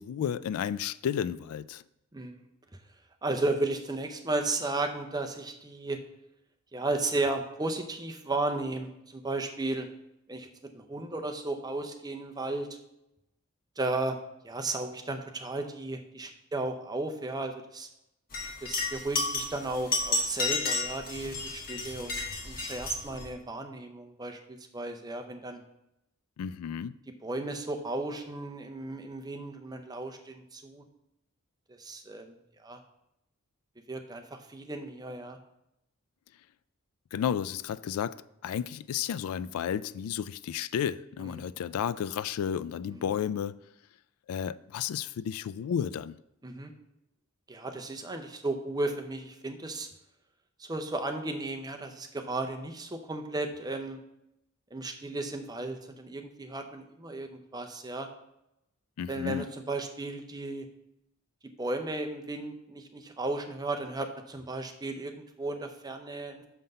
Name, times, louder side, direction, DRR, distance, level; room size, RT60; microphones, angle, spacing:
voice 1, 0.0-1.8 26.4-26.9 37.1-38.2 38.4-43.6 44.3-46.2 59.0-59.5, left 8 dB, 85° left, 0.3 m, -32 dB
voice 2, 3.2-6.0 6.7-9.9 10.3-12.8 13.8-14.2 14.4-17.9 18.6-25.6 27.2-30.8 31.7-32.3 32.6-32.8 33.9-35.4 41.2-41.5 42.9-43.0 46.4-46.7 47.5-49.9 50.6-54.0 54.7-58.1 59.1-60.7 61.6-66.4, right 2 dB, 20° right, 0.6 m, -34 dB
sound 1, 18.3-23.3, left 3 dB, 40° left, 1.5 m, -32 dB
6.7 x 5.7 x 5.3 m
head